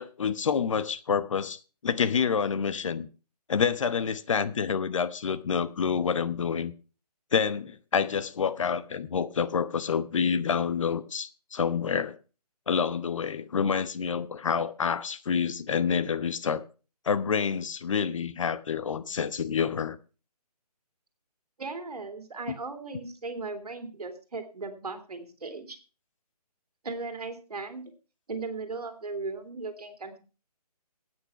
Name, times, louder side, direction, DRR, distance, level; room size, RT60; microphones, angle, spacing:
voice 1, 0.0-3.1 3.5-6.7 7.3-12.2 12.7-16.6 17.0-20.0, left 6 dB, 50° left, 0.9 m, -28 dB
voice 2, 21.6-25.8 26.8-27.9 28.3-30.2, right 3 dB, 70° right, 2.6 m, -37 dB
10.0 x 9.1 x 5.7 m
figure-of-eight pair, 155°, 20 cm